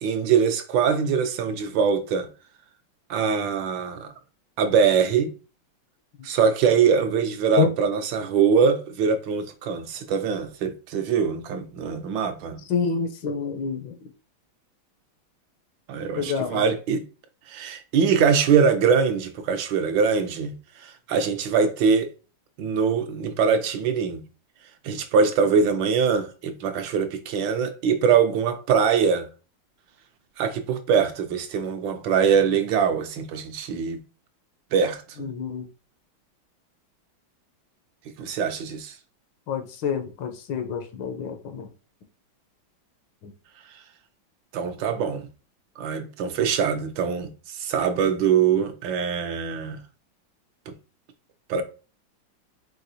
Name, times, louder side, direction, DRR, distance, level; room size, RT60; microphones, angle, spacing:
voice 1, 0.0-2.3 3.1-4.1 4.6-5.3 6.2-12.6 15.9-17.0 17.5-20.5 20.8-22.1 22.6-24.2 24.8-29.3 30.4-34.0 34.7-35.3 38.2-38.9 44.5-45.3 45.8-49.8 50.7-50.8 51.5-51.6, right 6 dB, 75° right, 1.2 m, -23 dB
voice 2, 12.7-14.1 16.1-16.6 35.2-35.7 39.5-41.7 43.2-43.3, left 6 dB, 75° left, 1.4 m, -28 dB
4.7 x 4.1 x 2.7 m
omnidirectional pair, 2.2 m